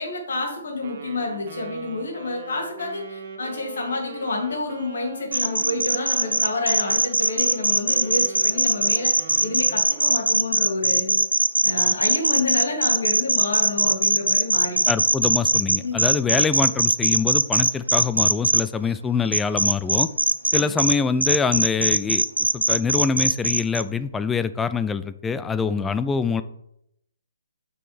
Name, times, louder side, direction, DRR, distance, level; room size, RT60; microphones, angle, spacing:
voice 1, 0.0-9.1 9.4-11.2 11.6-14.8 15.8-16.0 20.5-20.7 25.7-25.9, left 3 dB, 65° left, 1 dB, 2.3 m, -29 dB
Wind instrument woodwind instrument, 0.8-10.4, right 6 dB, 45° right, 1.1 m, -40 dB
sound 1, 5.3-18.6 19.3-20.9 21.2-23.8, right 2 dB, 85° right, 0.5 m, -20 dB
voice 2, 14.9-20.1 20.5-22.2 22.5-26.4, left 5 dB, 10° left, 13 dB, 0.3 m, -24 dB
7.4 x 6.3 x 3.3 m, 0.78 s
figure-of-eight pair, 130°, 0 cm